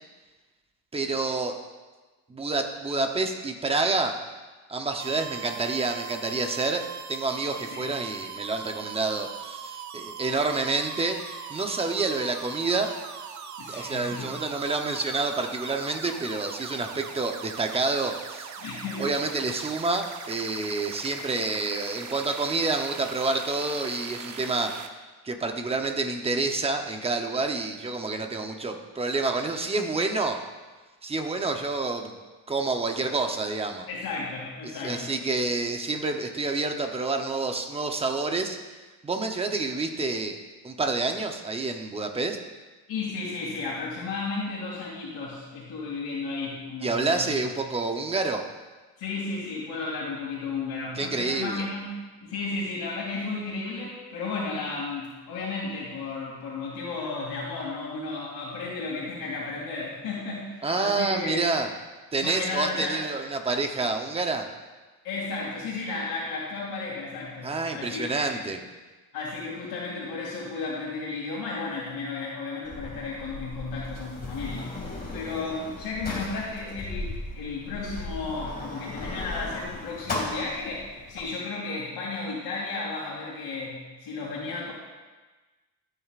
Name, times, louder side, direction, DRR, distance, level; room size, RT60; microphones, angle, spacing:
voice 1, 0.9-1.5 2.3-4.2 4.7-6.8 7.1-12.9 13.7-18.5 19.0-24.8 25.2-30.4 31.0-32.2 32.5-33.9 34.8-38.6 39.0-40.4 40.6-42.4 46.8-48.4 51.0-51.7 60.6-61.7 62.1-64.5 67.4-68.6, right 3 dB, 15° right, 4 dB, 0.8 m, -28 dB
sound 1, 5.0-24.9, right 7 dB, 45° right, 0.8 m, -41 dB
voice 2, 13.6-14.4 18.6-19.1 33.9-35.2 42.9-47.4 49.0-61.4 62.2-63.0 65.0-68.3 69.1-74.8 75.1-84.7, left 3 dB, 65° left, -6 dB, 2.7 m, -33 dB
Sliding door, 72.6-81.2, left 2 dB, 25° left, 2.3 m, -36 dB
14.5 x 9.1 x 2.5 m, 1.3 s
cardioid pair, 145°, 39 cm